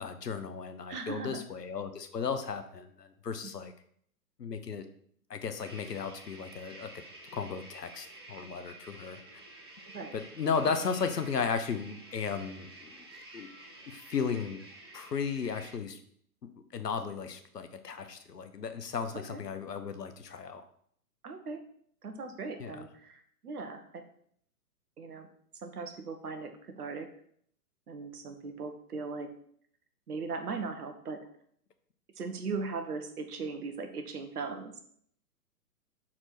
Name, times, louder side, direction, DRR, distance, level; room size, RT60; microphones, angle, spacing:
voice 1, 0.0-3.7 4.4-4.8 5.3-7.0 7.3-9.2 10.1-13.1 13.3-13.5 13.9-14.6 14.9-16.0 16.7-20.6 22.6-22.8, left 6 dB, 80° left, 8 dB, 1.0 m, -35 dB
voice 2, 0.9-1.4 9.9-10.1 19.1-19.4 21.2-21.6 22.0-24.0 25.0-25.3 25.6-27.1 27.9-29.3 30.1-31.3 32.2-34.8, right 4 dB, 70° right, 7 dB, 1.2 m, -38 dB
sound 1, 5.6-15.7, right 2 dB, 20° right, 0.3 m, -51 dB
6.3 x 4.5 x 4.3 m, 0.65 s
figure-of-eight pair, 120°, 47 cm